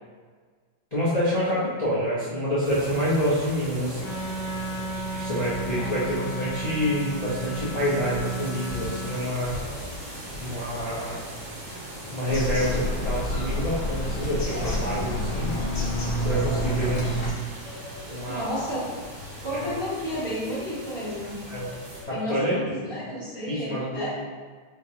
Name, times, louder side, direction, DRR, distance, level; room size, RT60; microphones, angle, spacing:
voice 1, 0.9-4.1 5.1-9.6 10.4-11.2 12.1-15.5 16.2-17.1 17.5-17.7 18.1-18.6 19.5-19.7 21.5-21.7 22.1-22.8 23.5-24.1, equal, 40° left, -10 dB, 0.6 m, -27 dB
sound 1, 2.6-22.0, right 1 dB, 85° right, 2.1 m, -39 dB
Wind instrument woodwind instrument, 4.0-9.2, right 1 dB, 75° left, 1.5 m, -34 dB
Bird vocalization bird call bird song, 12.3-17.3, equal, 60° left, 1.5 m, -28 dB
voice 2, 18.2-18.8 19.4-21.4 22.1-24.1, equal, 30° right, -12 dB, 1.4 m, -32 dB
4.9 x 3.3 x 2.9 m, 1.5 s
omnidirectional pair, 2.2 m